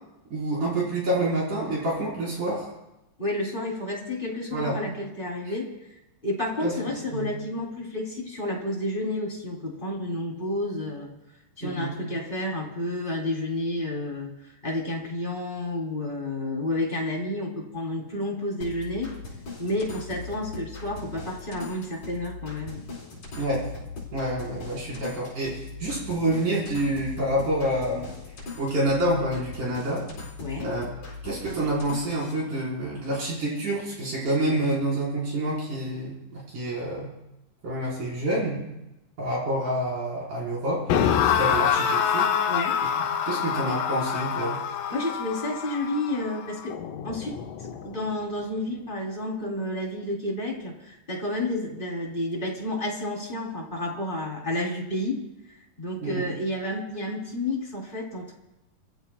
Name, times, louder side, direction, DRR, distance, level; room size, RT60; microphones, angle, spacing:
voice 1, 0.3-2.7 4.5-4.8 5.5-5.6 6.6-6.7 7.1-7.3 11.6-12.0 23.4-23.7 24.1-28.1 28.4-30.1 30.6-37.1 37.6-38.7 39.2-40.9 41.4-42.3 43.2-44.6 56.0-56.3, right 1 dB, 65° right, -5 dB, 6.5 m, -28 dB
voice 2, 3.2-5.7 6.2-11.1 11.6-19.1 19.6-22.9 30.4-30.7 42.5-42.8 44.9-46.8 47.0-47.4 47.8-55.2 55.5-58.3, left 1 dB, 15° left, -3 dB, 3.7 m, -30 dB
sound 1, 18.6-32.3, left 4 dB, 55° left, 5.6 m, -40 dB
sound 2, 40.9-48.0, left 8 dB, 85° left, 2.6 m, -26 dB
29.5 x 15.5 x 2.4 m, 0.95 s
omnidirectional pair, 3.8 m